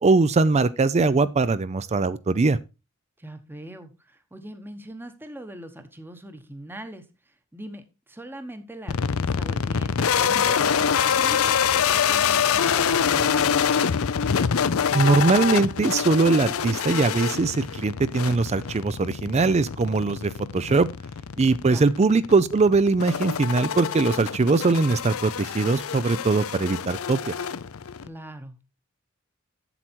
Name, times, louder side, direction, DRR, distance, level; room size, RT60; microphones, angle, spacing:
voice 1, 0.0-2.6 14.9-20.9 21.4-27.3, right 3 dB, 30° right, 0.4 m, -21 dB
voice 2, 3.2-13.7 21.7-21.9 28.0-28.6, right 1 dB, 10° right, 1.0 m, -41 dB
sound 1, 8.9-28.1, left 7 dB, 70° left, 0.5 m, -25 dB
7.9 x 7.6 x 4.4 m
head